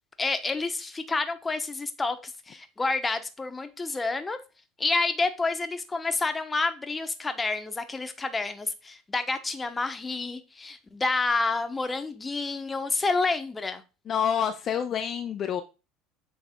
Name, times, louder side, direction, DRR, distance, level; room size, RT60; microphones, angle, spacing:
voice 1, 0.2-4.4 4.8-13.8, left 3 dB, 20° left, 9 dB, 1.1 m, -29 dB
voice 2, 14.1-15.6, left 8 dB, 45° left, 7 dB, 0.6 m, -27 dB
8.1 x 3.5 x 3.7 m, 0.31 s
supercardioid pair, 95°, 0 cm